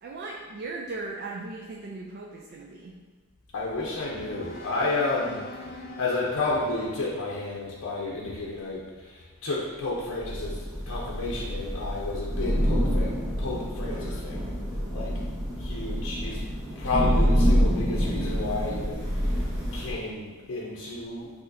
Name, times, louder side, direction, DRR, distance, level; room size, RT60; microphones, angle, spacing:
voice 1, 0.0-3.0, right 3 dB, 50° right, -1 dB, 0.4 m, -37 dB
sound 1, 3.3-8.5, left 1 dB, 45° left, 0.5 m, -45 dB
voice 2, 3.5-14.5 14.9-15.2 15.6-16.5 16.8-19.4 19.7-21.3, left 2 dB, 85° left, -3 dB, 0.6 m, -31 dB
Thunder / Rain, 10.2-19.9, equal, 15° right, 1.1 m, -27 dB
6.1 x 2.8 x 2.6 m, 1.4 s
head